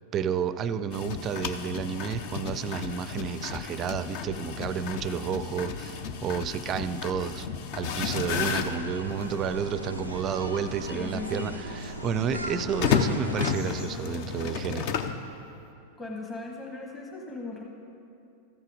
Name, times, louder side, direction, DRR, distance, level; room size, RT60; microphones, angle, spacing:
voice 1, 0.1-7.5 7.7-14.9, right 7 dB, 30° right, 14 dB, 0.4 m, -31 dB
sound 1, 0.9-9.4 10.1-10.2 12.6-15.2, left 7 dB, 45° left, 0.6 m, -32 dB
sound 2, 4.0-13.9, left 2 dB, 70° left, 2.8 m, -52 dB
sound 3, 8.1-13.5, equal, 90° left, 0.7 m, -37 dB
voice 2, 10.9-11.5 16.0-17.6, left 3 dB, 15° left, -2 dB, 1.2 m, -38 dB
14.0 x 8.2 x 5.0 m, 2.7 s
figure-of-eight pair, 90°, 0 cm